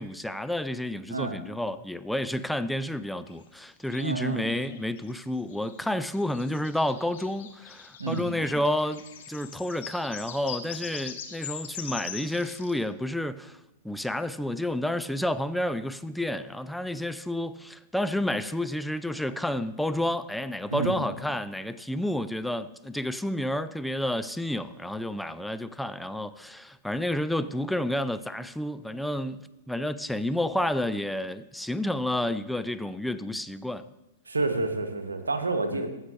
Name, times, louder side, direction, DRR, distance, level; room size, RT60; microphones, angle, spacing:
voice 1, 0.0-13.6 13.8-29.4 29.7-33.9 35.7-35.8, left 1 dB, ahead, 0.4 m, -30 dB
sound 1, 3.3-3.4 3.9-12.7, left 8 dB, 55° left, 1.1 m, -42 dB
voice 2, 4.0-4.5 8.0-8.3 20.7-21.0 34.3-35.9, right 3 dB, 80° right, 1.0 m, -29 dB
15.0 x 7.9 x 2.6 m
figure-of-eight pair, 105°, 0 cm